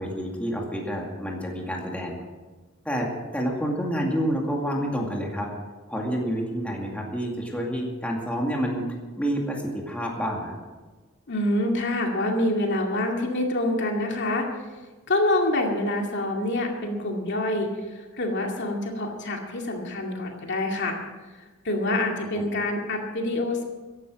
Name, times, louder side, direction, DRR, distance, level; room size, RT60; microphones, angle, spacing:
voice 1, 0.0-2.2 2.9-5.5 5.9-8.8 9.2-10.6 22.3-22.4, equal, 5° left, -1 dB, 2.3 m, -28 dB
voice 2, 11.3-14.5 15.1-17.7 18.2-21.0 21.6-23.6, left 1 dB, 55° left, 1 dB, 2.3 m, -26 dB
15.0 x 11.0 x 6.3 m, 1.3 s
head